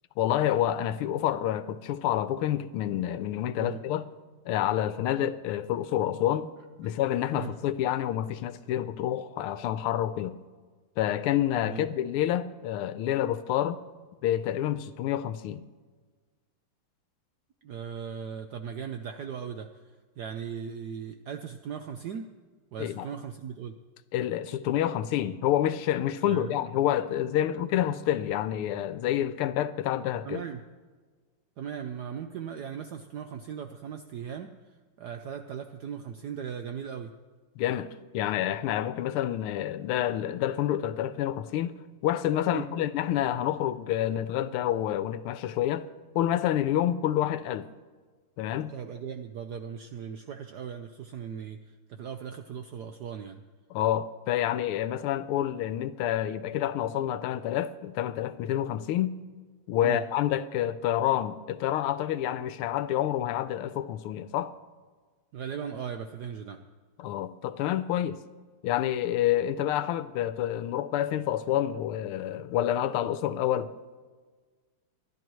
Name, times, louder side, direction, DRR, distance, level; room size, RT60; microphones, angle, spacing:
voice 1, 0.2-4.1 4.5-6.5 6.8-10.3 11.0-13.8 14.2-15.6 22.8-23.1 24.1-30.4 37.6-41.7 42.0-45.9 46.1-47.7 48.4-48.7 53.7-59.1 59.7-64.5 67.0-68.2 68.6-73.7, left 12 dB, 85° left, 1.5 m, -28 dB
voice 2, 17.6-19.7 20.2-22.3 22.7-23.7 26.2-26.6 30.2-30.6 31.6-37.1 42.5-42.6 48.7-53.4 59.8-60.0 65.3-66.6, right 7 dB, 75° right, 0.9 m, -38 dB
25.5 x 11.0 x 3.1 m
omnidirectional pair, 2.4 m